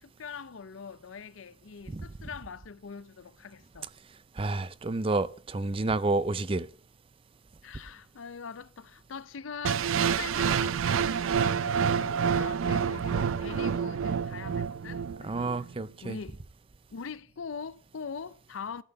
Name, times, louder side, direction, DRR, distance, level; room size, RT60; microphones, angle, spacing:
voice 1, 0.0-3.9 7.6-15.6 16.0-16.4 16.9-18.8, left 6 dB, 80° left, 0.6 m, -42 dB
voice 2, 4.4-6.7 15.2-16.2, right 2 dB, 25° right, 0.4 m, -30 dB
sound 1, 9.6-15.7, right 7 dB, 90° right, 0.4 m, -28 dB
13.0 x 5.5 x 6.9 m
head